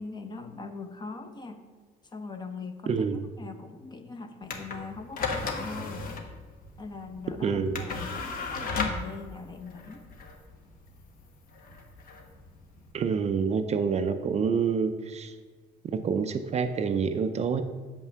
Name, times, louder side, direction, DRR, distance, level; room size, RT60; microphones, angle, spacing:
voice 1, 0.0-1.6 2.1-6.3 6.8-10.0, left 4 dB, 25° left, 6 dB, 0.8 m, -41 dB
voice 2, 2.9-3.2 7.4-7.8 12.9-15.3 15.8-17.6, right 6 dB, 40° right, 8 dB, 0.5 m, -27 dB
sound 1, 4.4-12.9, left 4 dB, 55° left, 1.1 m, -35 dB
7.0 x 5.6 x 5.7 m, 1.4 s
cardioid pair, 110°, 17 cm